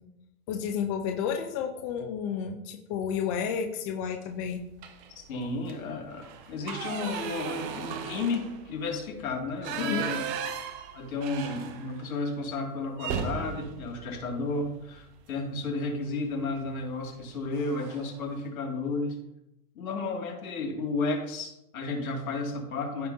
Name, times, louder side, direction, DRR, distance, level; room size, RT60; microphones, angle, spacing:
voice 1, 0.5-4.6 9.8-10.1, left 7 dB, 25° left, 4 dB, 0.5 m, -31 dB
sound 1, 4.8-5.2 5.6-5.7 6.1-12.1 12.4-12.6 13.0-15.1 16.4-16.7 17.1-17.2 17.5-18.2, right 7 dB, 30° right, 0.8 m, -37 dB
voice 2, 5.1-10.2 10.9-19.2 19.7-23.1, left 3 dB, 60° left, 1 dB, 2.5 m, -33 dB
14.5 x 4.9 x 2.7 m, 0.85 s
hypercardioid pair, 130°, 47 cm